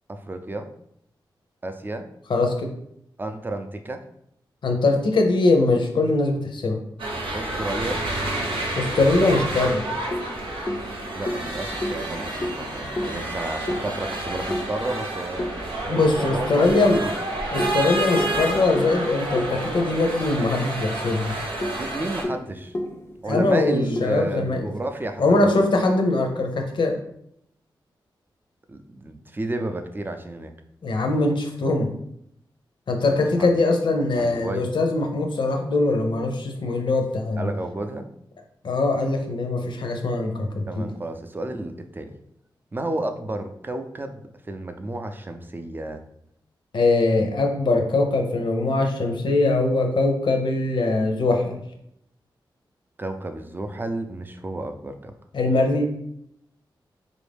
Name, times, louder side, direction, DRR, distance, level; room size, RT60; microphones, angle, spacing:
voice 1, 0.1-0.7 1.6-2.1 3.2-4.0 7.3-8.0 11.1-15.5 15.8-17.1 21.7-22.7 23.2-25.6 28.7-30.5 33.4-33.5 34.2-34.7 37.4-38.1 40.7-42.1 42.7-44.2 44.5-46.0 53.0-55.1, right 2 dB, 25° right, 6 dB, 0.5 m, -31 dB
voice 2, 2.3-2.7 4.6-6.8 8.8-9.9 15.9-17.0 17.5-21.4 23.3-24.6 25.2-27.0 30.8-31.9 32.9-37.5 38.6-40.8 46.7-51.6 55.3-55.8, left 2 dB, 70° left, 3 dB, 0.7 m, -22 dB
sound 1, 7.0-22.2, right 1 dB, 90° right, 0.9 m, -30 dB
sound 2, 9.6-16.1 16.7-20.6 20.9-21.0 21.4-25.0, left 1 dB, 30° left, 0.5 m, -33 dB
3.9 x 2.6 x 3.4 m, 0.75 s
cardioid pair, 70°, 8 cm